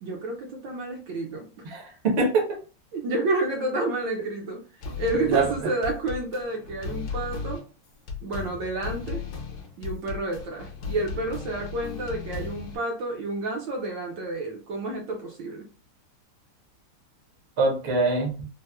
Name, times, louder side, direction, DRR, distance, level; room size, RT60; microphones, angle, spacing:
voice 1, 0.0-1.5 2.9-4.6 5.0-7.6 8.2-9.2 9.8-15.7, right 2 dB, 70° right, 0 dB, 1.2 m, -30 dB
voice 2, 1.6-2.6 5.3-5.5 17.6-18.5, right 3 dB, 55° right, 0 dB, 0.8 m, -24 dB
sound 1, 4.8-12.8, left 5 dB, 60° left, 1.1 m, -36 dB
4.0 x 2.1 x 2.2 m, 0.35 s
omnidirectional pair, 2.4 m